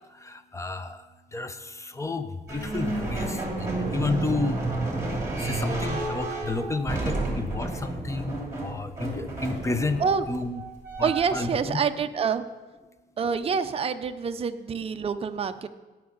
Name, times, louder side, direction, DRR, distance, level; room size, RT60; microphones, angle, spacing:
voice 1, 0.1-4.7 5.0-10.6 11.0-11.8, left 3 dB, 15° left, 10 dB, 0.7 m, -32 dB
sound 1, 2.5-11.6, right 2 dB, 15° right, 2.7 m, -31 dB
voice 2, 11.0-12.4 13.2-15.7, right 6 dB, 30° right, 8 dB, 0.5 m, -27 dB
17.5 x 6.0 x 3.9 m, 1.2 s
cardioid pair, 110°, 18 cm